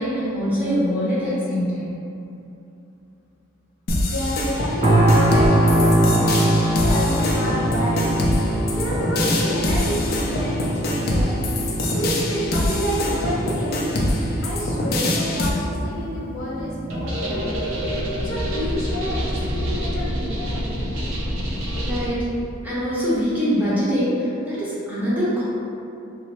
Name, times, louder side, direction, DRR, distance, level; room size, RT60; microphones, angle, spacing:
voice 1, 0.0-1.9 21.8-22.3 22.6-25.4, equal, 10° right, -10 dB, 0.8 m, -23 dB
voice 2, 3.9-10.5 10.9-14.0 14.4-20.7, equal, 85° left, -6 dB, 0.9 m, -29 dB
sound 1, 3.9-15.5, left 1 dB, 45° left, 0.4 m, -24 dB
sound 2, 4.8-19.8 20.3-20.5, right 1 dB, 25° right, 0.3 m, -24 dB
sound 3, 16.9-22.1, equal, 70° right, 0.6 m, -26 dB
3.2 x 2.0 x 4.1 m, 2.8 s
head